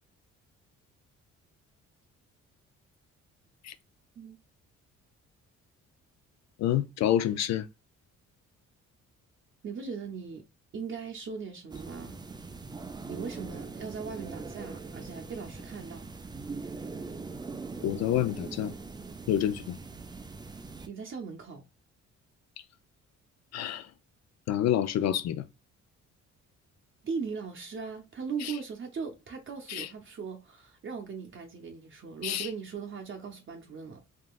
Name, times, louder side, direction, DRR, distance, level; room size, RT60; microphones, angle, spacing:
voice 1, 6.6-7.7 17.8-18.7 19.3-19.8 23.5-23.9 24.5-25.4 28.4-28.5 29.7-29.9 32.2-32.5, left 11 dB, 60° left, 0.4 m, -28 dB
voice 2, 9.6-10.4 10.7-12.2 13.1-16.1 20.9-21.6 27.0-34.0, right 5 dB, 40° right, 0.8 m, -39 dB
sound 1, 11.7-20.9, right 4 dB, 15° right, 0.4 m, -41 dB
3.7 x 2.3 x 2.3 m
cardioid pair, 90°, 30 cm